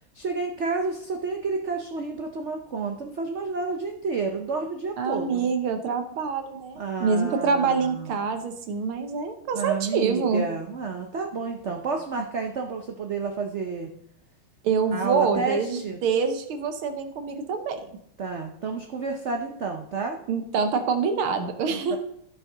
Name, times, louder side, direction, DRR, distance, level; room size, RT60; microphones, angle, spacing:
voice 1, 0.1-5.5 6.8-8.2 9.5-13.9 14.9-16.0 18.2-20.2 21.7-22.0, right 4 dB, 65° right, 3 dB, 0.7 m, -30 dB
voice 2, 5.0-10.4 14.6-17.8 20.3-22.0, right 5 dB, 80° right, 7 dB, 1.9 m, -26 dB
15.5 x 5.2 x 3.9 m, 0.69 s
omnidirectional pair, 2.3 m